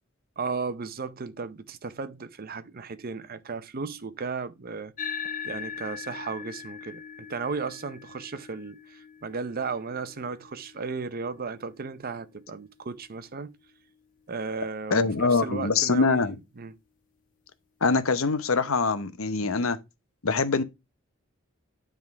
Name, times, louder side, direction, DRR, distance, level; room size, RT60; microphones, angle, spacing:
voice 1, 0.4-13.5 14.3-16.3 16.6-16.8, right 4 dB, 45° right, 0.7 m, -35 dB
sound 1, 5.0-13.7, left 7 dB, 40° left, 0.7 m, -41 dB
voice 2, 14.9-16.3 17.8-19.8 20.2-20.6, left 4 dB, 80° left, 0.9 m, -24 dB
9.8 x 3.7 x 4.6 m
head